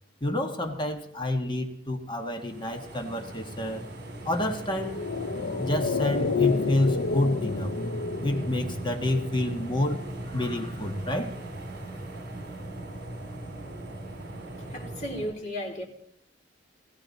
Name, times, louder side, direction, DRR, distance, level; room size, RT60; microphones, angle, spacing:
voice 1, 0.2-3.8 4.2-5.0 5.6-7.7 8.2-10.0 10.3-11.3, left 1 dB, 25° left, 4 dB, 1.5 m, -29 dB
sound 1, 2.2-15.3, right 1 dB, 60° right, 2.8 m, -38 dB
sound 2, 4.7-9.3 9.6-9.7, left 5 dB, 80° left, 0.5 m, -29 dB
voice 2, 14.7-15.8, equal, 40° left, 0 dB, 3.6 m, -34 dB
18.5 x 15.0 x 4.1 m, 0.71 s
head